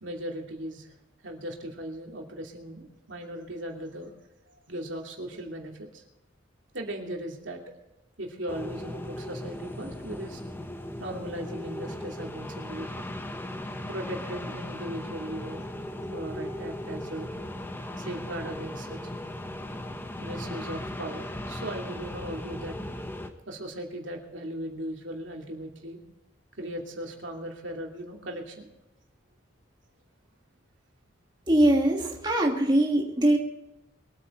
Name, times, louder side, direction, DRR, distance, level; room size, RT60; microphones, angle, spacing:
voice 1, 0.0-1.0 1.2-4.1 4.7-6.0 6.7-7.6 8.2-10.4 11.0-13.1 13.9-15.7 16.1-17.3 18.0-19.1 20.2-22.7 23.5-26.0 26.6-28.7, right 1 dB, 70° right, 1 dB, 2.8 m, -38 dB
sound 1, 8.5-23.3, left 1 dB, 10° left, 1.1 m, -37 dB
voice 2, 31.5-33.4, right 1 dB, 20° right, 0 dB, 1.6 m, -22 dB
23.0 x 9.2 x 4.4 m, 0.92 s
head